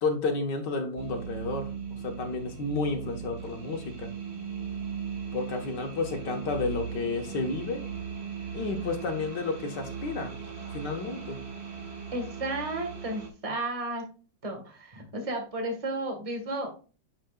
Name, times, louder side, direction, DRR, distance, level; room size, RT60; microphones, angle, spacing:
voice 1, 0.0-4.1 5.3-7.8 8.5-10.3 10.7-11.4, left 3 dB, 65° left, 4 dB, 2.0 m, -31 dB
sound 1, 1.0-13.3, right 7 dB, 35° right, 1.6 m, -38 dB
voice 2, 12.1-14.0 14.4-16.7, right 2 dB, 20° right, 3 dB, 1.5 m, -33 dB
9.7 x 5.8 x 2.4 m, 0.35 s
omnidirectional pair, 2.0 m